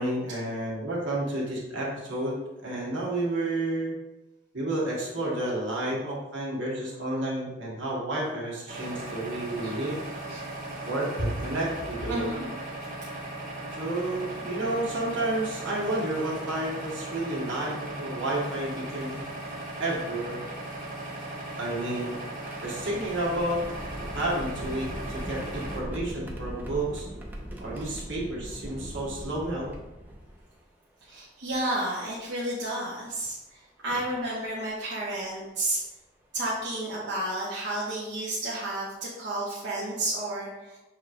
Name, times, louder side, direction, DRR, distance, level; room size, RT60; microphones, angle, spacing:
voice 1, 0.0-3.9 4.5-10.0 10.8-12.3 13.7-19.2 19.8-20.4 21.6-22.2 22.6-23.6 24.1-27.1 27.6-29.7 33.9-34.0, right 1 dB, 90° right, -5 dB, 1.5 m, -31 dB
sound 1, 8.7-25.8, right 1 dB, 45° right, 1.1 m, -38 dB
voice 2, 12.1-12.5 31.1-33.4 33.8-35.8 36.3-40.7, right 1 dB, 65° right, -7 dB, 0.9 m, -31 dB
sound 2, 21.4-30.6 31.5-31.6 33.1-33.3 34.0-34.2 35.8-35.9 36.4-36.6, equal, 10° right, 0.5 m, -40 dB
6.3 x 3.1 x 2.6 m, 1.0 s
head